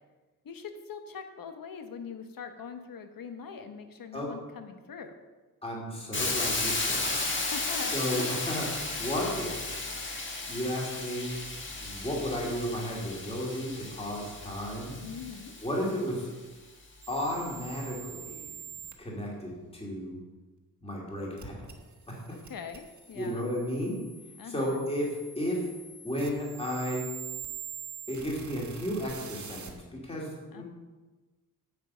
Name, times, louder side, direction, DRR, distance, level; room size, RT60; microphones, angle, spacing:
voice 1, 0.4-5.1 7.3-8.3 15.0-15.5 22.3-23.5 24.4-24.8 30.5-30.6, left 6 dB, 65° left, 7 dB, 1.2 m, -42 dB
voice 2, 5.6-7.3 7.9-9.6 10.5-11.4 11.8-15.0 15.6-16.3 17.1-18.5 19.0-20.2 20.8-21.6 22.1-22.4 23.1-24.0 24.4-25.7 26.0-27.1 28.1-30.6, equal, 15° left, -3 dB, 2.6 m, -33 dB
Hiss, 6.1-16.0, left 3 dB, 30° left, 1.5 m, -34 dB
sound 1, 17.0-18.9 21.4-29.7, right 8 dB, 50° right, 1.4 m, -45 dB
9.4 x 8.0 x 5.6 m, 1.3 s
wide cardioid pair, 160°, 36 cm